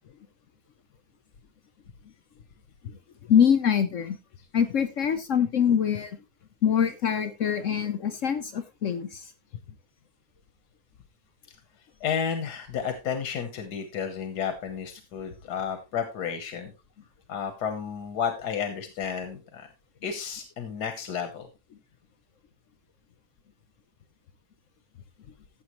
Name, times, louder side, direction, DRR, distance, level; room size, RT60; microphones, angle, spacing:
voice 1, 2.8-4.2 4.5-6.2 6.6-9.3, left 8 dB, 60° left, 9 dB, 1.0 m, -24 dB
voice 2, 11.5-16.7 17.3-19.7 20.0-21.5, left 7 dB, 90° left, 7 dB, 1.7 m, -32 dB
14.5 x 7.3 x 3.1 m, 0.27 s
omnidirectional pair, 1.7 m